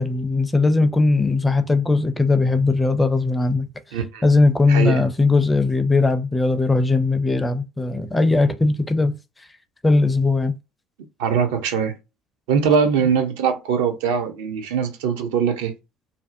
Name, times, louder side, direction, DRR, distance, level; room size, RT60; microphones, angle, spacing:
voice 1, 0.0-3.7 4.2-9.1 9.8-10.5, left 3 dB, 15° left, 0.4 m, -19 dB
voice 2, 3.9-4.3 4.7-5.0 11.2-11.9 12.5-15.7, right 6 dB, 65° right, 0.4 m, -21 dB
2.6 x 2.0 x 2.5 m
figure-of-eight pair, 55°, 0 cm